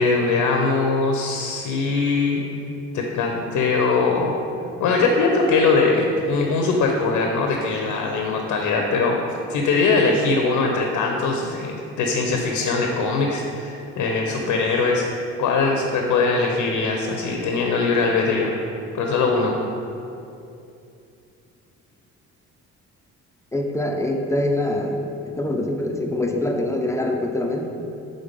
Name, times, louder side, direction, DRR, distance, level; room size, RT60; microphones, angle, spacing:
voice 1, 0.0-2.4 2.9-4.3 4.8-9.2 9.5-15.0 15.4-18.5 18.9-19.5, left 4 dB, 85° left, 1 dB, 0.7 m, -21 dB
voice 2, 23.5-25.0 25.3-27.7, left 1 dB, 10° left, 2 dB, 0.5 m, -24 dB
5.2 x 3.8 x 5.2 m, 2.6 s
cardioid pair, 90°, 30 cm